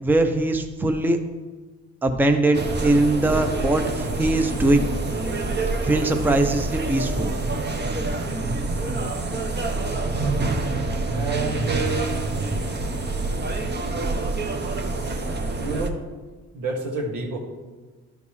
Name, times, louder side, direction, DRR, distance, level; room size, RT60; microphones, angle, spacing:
voice 1, 0.0-1.2 2.0-4.9 5.8-7.3, right 2 dB, 5° right, 5 dB, 0.6 m, -21 dB
sound 1, 2.5-15.9, right 2 dB, 35° right, 0.9 m, -26 dB
voice 2, 11.1-12.2 12.7-12.8 15.6-16.0 16.5-17.4, right 3 dB, 80° right, -1 dB, 1.8 m, -29 dB
12.0 x 5.2 x 3.2 m, 1.3 s
cardioid pair, 90°, 30 cm